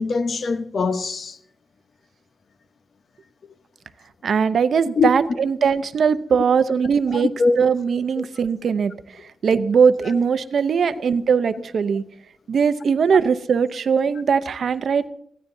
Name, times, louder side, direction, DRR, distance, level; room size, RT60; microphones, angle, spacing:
voice 1, 0.0-1.4 5.0-5.1 7.1-7.6 8.2-8.3 10.0-10.2, left 4 dB, 55° left, 0.9 m, -22 dB
voice 2, 4.2-7.3 7.6-8.9 9.4-12.0 12.5-15.1, right 6 dB, 65° right, 0.7 m, -20 dB
22.0 x 15.0 x 2.7 m
wide cardioid pair, 175°, 0 cm